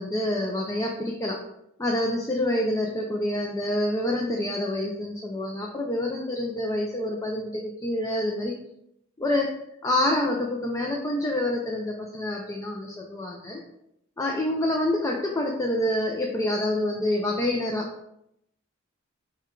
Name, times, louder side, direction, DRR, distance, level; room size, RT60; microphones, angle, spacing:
voice 1, 0.0-1.4 1.8-8.5 9.2-9.5 9.8-13.6 14.2-17.9, left 1 dB, 15° left, 0 dB, 0.4 m, -27 dB
5.8 x 2.3 x 3.6 m, 0.80 s
head